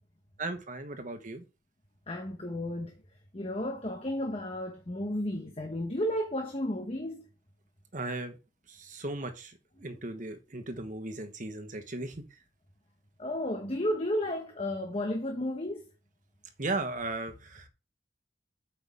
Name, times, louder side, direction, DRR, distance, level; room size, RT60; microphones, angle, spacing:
voice 1, 0.4-1.4 7.9-8.4 8.7-9.5 9.8-12.1 16.6-17.7, right 2 dB, 45° right, 1.3 m, -36 dB
voice 2, 2.1-2.9 3.3-7.2 13.2-15.9, left 1 dB, 30° left, 1.0 m, -33 dB
8.2 x 5.8 x 3.6 m
head